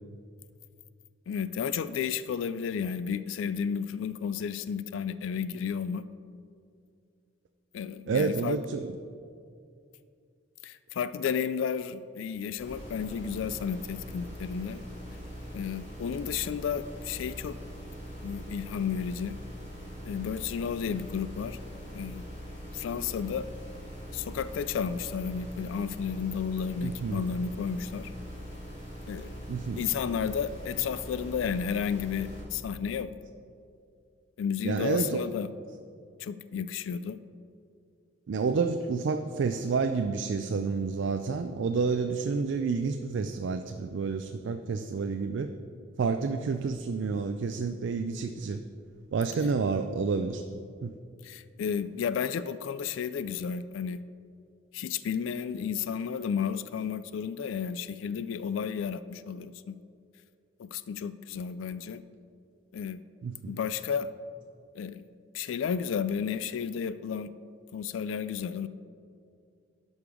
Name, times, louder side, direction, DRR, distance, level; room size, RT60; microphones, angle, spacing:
voice 1, 1.3-6.0 7.7-8.6 10.6-14.8 15.5-17.6 18.2-19.4 20.0-21.6 21.9-22.3 22.7-23.5 24.1-28.1 29.1-29.3 29.8-33.1 34.4-35.5 36.2-37.2 51.2-54.0 54.7-59.8 60.6-62.0 62.7-63.0 63.5-64.1 64.7-65.1 65.3-67.3 67.7-68.7, left 7 dB, 85° left, 15 dB, 0.3 m, -32 dB
voice 2, 8.1-8.9 26.8-27.2 29.5-29.8 34.6-35.3 38.3-45.5 46.0-48.6 49.1-50.4 50.8-50.9 63.2-63.5, right 4 dB, 70° right, 8 dB, 0.4 m, -29 dB
sound 1, 12.6-32.4, equal, 65° left, 2.3 m, -42 dB
11.5 x 5.3 x 4.8 m, 2.4 s
head